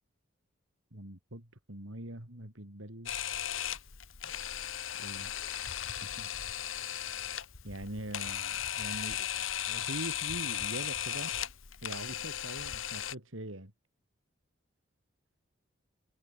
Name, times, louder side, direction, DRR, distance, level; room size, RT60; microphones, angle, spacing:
voice 1, 0.9-3.4 5.0-5.3 6.0-6.3 7.6-11.3 11.8-13.7, right 1 dB, 80° right, 4.2 m, -43 dB
Camera, 3.1-13.1, left 10 dB, 80° left, 1.5 m, -36 dB
head